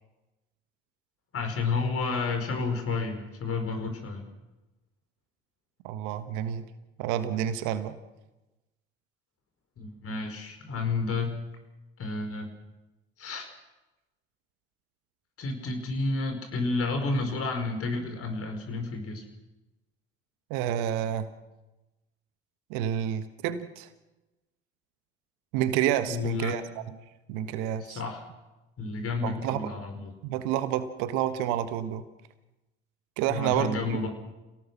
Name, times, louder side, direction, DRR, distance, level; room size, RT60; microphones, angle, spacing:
voice 1, 1.3-4.2 9.8-11.4 12.0-12.5 13.2-13.5 15.4-19.2 26.1-26.6 27.8-28.2 28.8-30.1 33.3-34.1, left 3 dB, 45° left, 6 dB, 5.0 m, -31 dB
voice 2, 5.8-6.6 7.0-7.9 20.5-21.3 22.7-23.9 25.5-26.6 27.3-28.0 29.2-29.7 30.2-32.0 33.2-33.8, right 11 dB, 65° right, 12 dB, 1.4 m, -29 dB
28.5 x 18.0 x 6.2 m, 1.0 s
hypercardioid pair, 55°, 31 cm